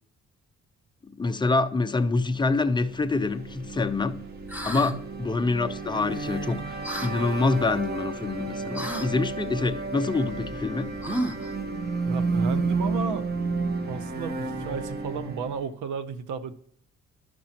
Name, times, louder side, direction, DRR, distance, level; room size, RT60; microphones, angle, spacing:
voice 1, 1.2-4.2 4.6-11.0, left 3 dB, 15° left, 0.5 m, -26 dB
sound 1, 2.7-15.7, right 3 dB, 35° right, 1.1 m, -32 dB
sound 2, 4.5-4.9 6.8-7.1 8.7-9.1 11.0-11.5, right 1 dB, 5° right, 0.9 m, -31 dB
voice 2, 4.7-5.0 12.0-13.2 13.7-16.5, right 6 dB, 80° right, 0.7 m, -33 dB
11.5 x 6.0 x 2.9 m
cardioid pair, 90°, 30 cm